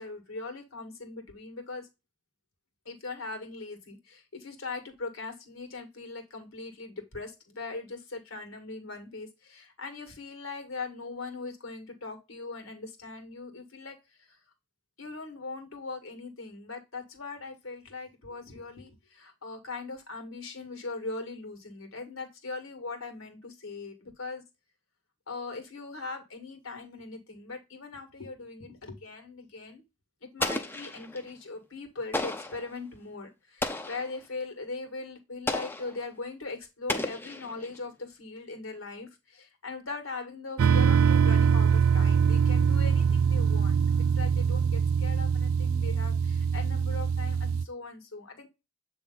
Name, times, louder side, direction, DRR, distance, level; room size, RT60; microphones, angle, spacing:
voice 1, 0.0-1.9 2.9-14.4 15.0-24.4 25.3-29.8 30.2-43.8 44.1-48.5, left 3 dB, 85° left, 4 dB, 1.9 m, -40 dB
Explosion, 30.4-31.3 32.1-32.7 33.6-34.1 35.5-36.0 36.9-37.8, left 2 dB, 10° left, 0.5 m, -33 dB
sound 1, 40.6-47.6, right 6 dB, 85° right, 0.4 m, -23 dB
7.7 x 3.4 x 3.9 m, 0.24 s
head